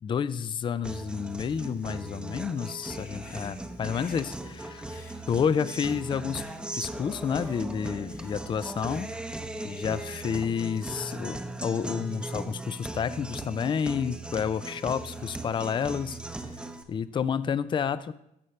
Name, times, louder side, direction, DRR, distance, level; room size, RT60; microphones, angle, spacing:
voice 1, 0.0-4.8 5.3-6.4 6.7-9.1 9.6-16.2 16.9-18.1, left 7 dB, 30° left, 15 dB, 0.4 m, -30 dB
Guitar, 0.8-16.8, right 2 dB, 5° right, 0.7 m, -38 dB
Human voice / Breathing, 2.8-7.0 7.3-11.0, left 4 dB, 55° left, 1.4 m, -56 dB
15.5 x 5.6 x 3.2 m, 0.80 s
cardioid pair, 110°, 17 cm